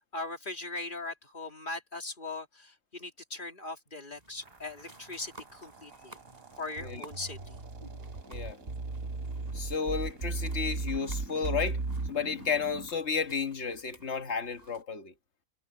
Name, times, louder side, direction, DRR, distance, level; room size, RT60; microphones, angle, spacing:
voice 1, 0.0-6.2 6.6-7.6, left 2 dB, 35° left, 3.1 m, -40 dB
sound 1, 4.1-14.8, right 1 dB, 30° right, 5.4 m, -56 dB
sound 2, 4.4-12.9, right 2 dB, 80° right, 3.6 m, -51 dB
sound 3, 6.8-12.1, right 3 dB, 50° right, 1.9 m, -35 dB
voice 2, 9.5-11.8 12.1-15.1, left 5 dB, 55° left, 1.7 m, -32 dB
omnidirectional pair, 1.4 m